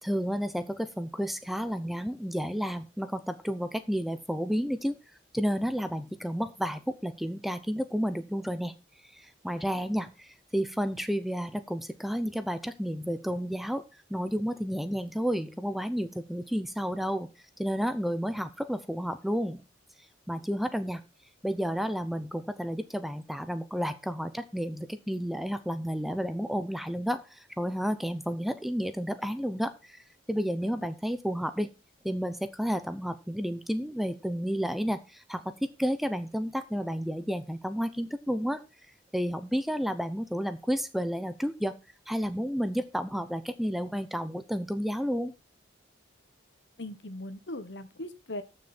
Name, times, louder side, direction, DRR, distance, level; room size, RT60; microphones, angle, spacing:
voice 1, 0.0-5.0 5.3-8.7 9.0-13.8 14.1-17.3 17.6-19.6 20.3-21.0 21.4-30.0 30.3-31.7 32.0-35.5 35.8-38.6 39.1-41.8 42.1-45.3, equal, ahead, 11 dB, 0.7 m, -31 dB
voice 2, 46.8-48.4, left 1 dB, 65° left, 11 dB, 1.4 m, -40 dB
14.0 x 6.5 x 4.3 m, 0.28 s
head